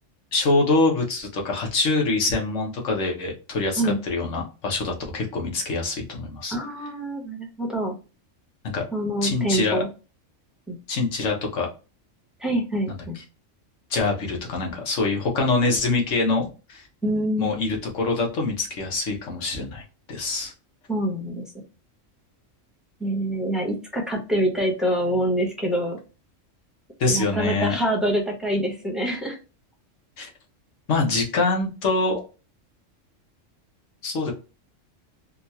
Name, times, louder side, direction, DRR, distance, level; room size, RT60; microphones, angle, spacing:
voice 1, 0.3-6.5 8.7-8.8 9.2-9.8 10.9-11.7 12.9-13.0 13.9-16.9 17.4-20.5 27.0-27.8 30.2-30.3 30.9-32.2 34.0-34.3, left 3 dB, 75° left, 1 dB, 1.4 m, -24 dB
voice 2, 6.5-8.0 8.9-9.9 10.7-10.8 12.4-13.2 17.0-17.5 20.9-21.4 23.0-26.0 27.1-29.4, right 1 dB, ahead, -1 dB, 0.8 m, -25 dB
3.7 x 2.3 x 2.7 m, 0.32 s
omnidirectional pair, 1.3 m